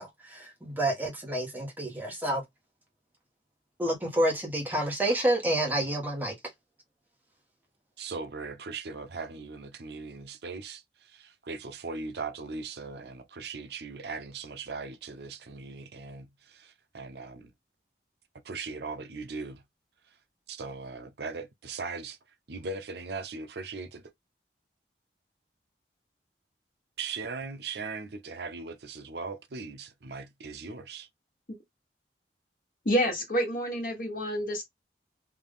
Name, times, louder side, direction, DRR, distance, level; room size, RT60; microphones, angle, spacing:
voice 1, 0.0-2.4 3.8-6.3, right 1 dB, 10° right, 1.2 m, -29 dB
voice 2, 8.0-10.8 11.1-17.5 18.4-19.6 20.5-22.2 22.5-24.0 27.0-31.1, right 4 dB, 70° right, 0.6 m, -39 dB
voice 3, 32.8-34.6, equal, 50° left, 1.5 m, -28 dB
3.4 x 2.5 x 3.5 m
head